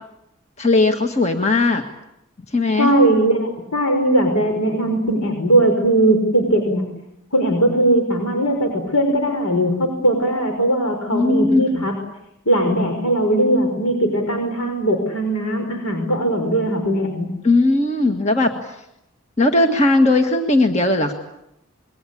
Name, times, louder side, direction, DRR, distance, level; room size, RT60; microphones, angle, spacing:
voice 1, 0.6-1.8 2.5-2.9 11.1-11.8 17.4-18.5 19.4-21.1, left 2 dB, 30° left, 5 dB, 1.6 m, -17 dB
voice 2, 2.8-6.9 7.3-11.9 12.5-17.3, right 1 dB, 90° left, 4 dB, 5.4 m, -19 dB
26.5 x 23.0 x 8.5 m, 0.82 s
head